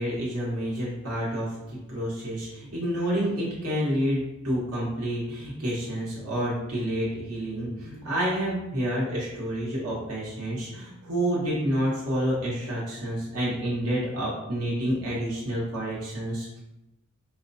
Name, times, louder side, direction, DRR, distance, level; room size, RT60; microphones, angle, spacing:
voice 1, 0.0-1.6 1.9-16.6, equal, 85° right, -7 dB, 1.4 m, -29 dB
4.7 x 2.2 x 2.7 m, 0.92 s
head